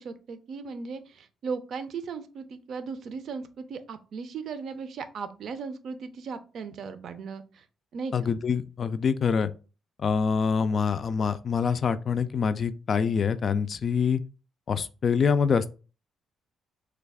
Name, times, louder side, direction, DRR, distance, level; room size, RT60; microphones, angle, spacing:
voice 1, 0.0-7.6 7.9-8.3, right 5 dB, 65° right, 0.5 m, -37 dB
voice 2, 8.1-9.5 10.0-14.2 14.7-15.7, left 6 dB, 50° left, 0.3 m, -25 dB
3.2 x 2.3 x 3.5 m
cardioid pair, 90°, 0 cm